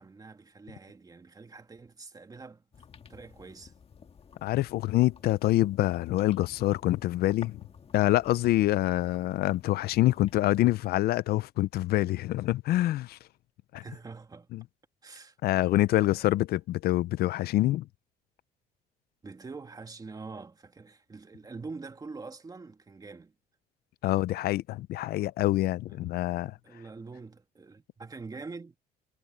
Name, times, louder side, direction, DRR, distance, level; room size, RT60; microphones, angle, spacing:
voice 1, 0.0-2.6 3.1-3.7 13.7-14.5 15.0-15.4 15.9-16.2 19.2-23.3 25.9-28.8, right 4 dB, 20° right, 2.4 m, -45 dB
sound 1, 2.7-10.8, left 6 dB, 35° left, 1.9 m, -52 dB
voice 2, 4.4-7.6 7.9-13.2 13.7-13.8 14.5-14.6 15.4-17.8 24.0-26.6, left 16 dB, 70° left, 0.5 m, -26 dB
cardioid pair, 110°, 17 cm